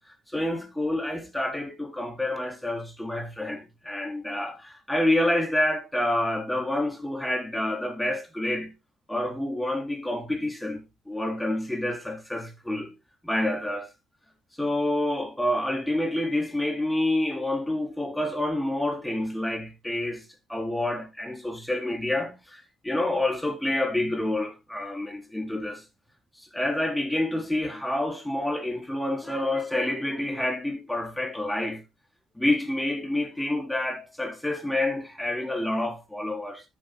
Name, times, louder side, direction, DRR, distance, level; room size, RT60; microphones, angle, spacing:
voice 1, 0.3-8.7 9.1-12.9 13.2-13.9 14.6-25.8 26.4-31.8 32.3-36.6, left 1 dB, 5° left, 4.0 m, -28 dB
13.5 x 8.6 x 2.3 m
cardioid pair, 90°, 0 cm